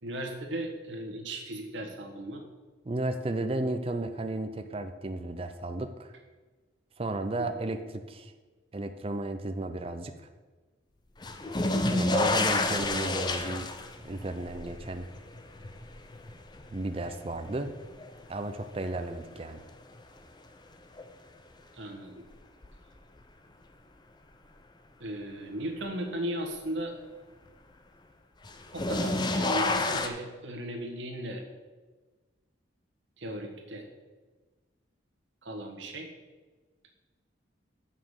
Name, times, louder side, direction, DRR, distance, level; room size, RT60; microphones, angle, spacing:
voice 1, 0.0-2.4 7.4-7.5 11.7-12.0 21.7-22.2 25.0-26.9 28.7-31.4 33.2-33.8 35.4-36.1, right 1 dB, 80° right, 2 dB, 1.5 m, -36 dB
voice 2, 2.8-6.1 7.0-8.3 8.7-10.3 11.8-13.7 14.0-15.0 16.7-17.7 18.3-19.6, right 2 dB, 30° right, 8 dB, 0.5 m, -33 dB
sound 1, 11.2-18.2 18.7-19.4 21.0-21.1 22.6-22.7 28.5-30.1, left 2 dB, 25° left, 0.5 m, -30 dB
7.1 x 5.7 x 6.4 m, 1.3 s
head